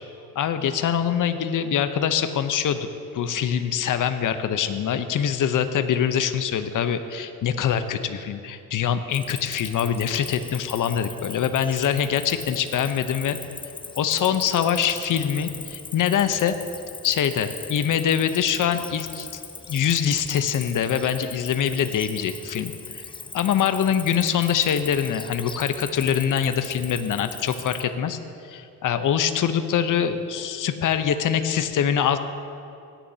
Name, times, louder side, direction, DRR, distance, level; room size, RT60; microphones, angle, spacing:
voice 1, 0.3-2.9 3.1-13.4 13.9-16.5 17.0-19.3 19.7-23.1 23.3-28.2 28.5-32.2, left 8 dB, 50° left, 9 dB, 0.8 m, -24 dB
Cricket, 9.1-27.8, left 4 dB, 15° left, 0.4 m, -39 dB
17.0 x 10.0 x 2.8 m, 2.5 s
supercardioid pair, 75°, 40 cm